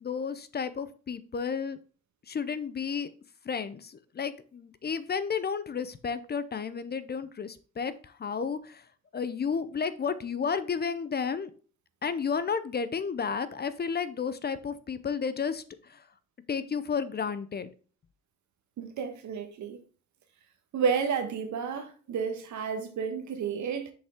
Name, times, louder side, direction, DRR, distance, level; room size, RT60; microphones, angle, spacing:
voice 1, 0.0-1.8 2.3-3.1 3.4-8.8 9.1-11.5 12.0-16.0 16.5-17.7, left 6 dB, 35° left, 0.6 m, -32 dB
voice 2, 18.8-19.8 20.7-23.9, right 6 dB, 70° right, 1.3 m, -31 dB
6.5 x 5.3 x 3.6 m
cardioid pair, 90°, 30 cm